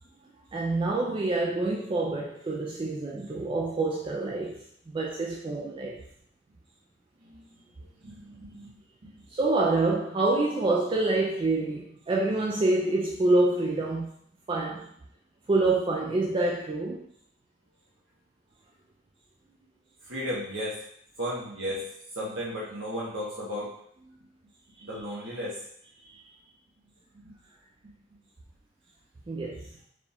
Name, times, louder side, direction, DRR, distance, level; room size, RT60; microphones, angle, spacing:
voice 1, 0.5-6.0 9.3-14.1 14.5-14.9 15.5-17.0 26.0-26.2 29.3-29.7, right 2 dB, 25° right, 0.3 m, -27 dB
voice 2, 8.0-8.7 9.0-9.2 20.0-20.8 21.2-23.7 24.8-25.6 27.1-27.3, equal, 70° right, 1.0 m, -35 dB
4.9 x 2.3 x 3.4 m
head